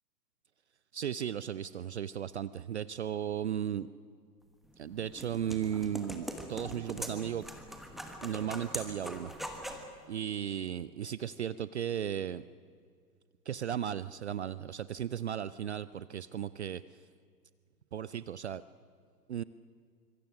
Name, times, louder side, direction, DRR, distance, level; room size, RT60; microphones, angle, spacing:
voice 1, 0.9-3.9 4.8-7.4 8.2-9.8 10.1-12.4 13.5-16.8 17.9-18.6 19.3-19.4, right 9 dB, 45° right, 17 dB, 0.5 m, -36 dB
sound 1, 4.6-9.9, equal, ahead, 1.2 m, -42 dB
25.0 x 23.5 x 6.4 m, 2.1 s
figure-of-eight pair, 110°, 49 cm